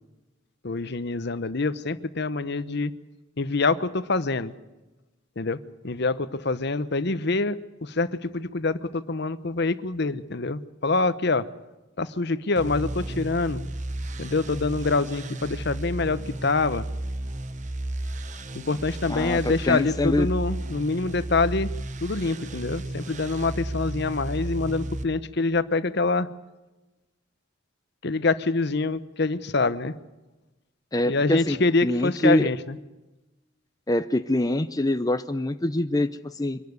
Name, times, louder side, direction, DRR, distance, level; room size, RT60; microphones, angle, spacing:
voice 1, 0.6-2.9 3.4-4.5 5.4-5.6 5.8-7.6 7.8-11.5 12.0-13.6 14.2-16.9 18.5-21.7 22.0-26.3 28.0-30.0 31.1-32.8, left 3 dB, 55° left, 14 dB, 0.9 m, -25 dB
sound 1, 12.6-25.0, right 1 dB, 35° right, 0.9 m, -33 dB
voice 2, 19.1-20.3 30.9-32.5 33.9-36.6, left 1 dB, 20° left, 9 dB, 0.6 m, -25 dB
24.5 x 12.0 x 9.6 m, 1.1 s
head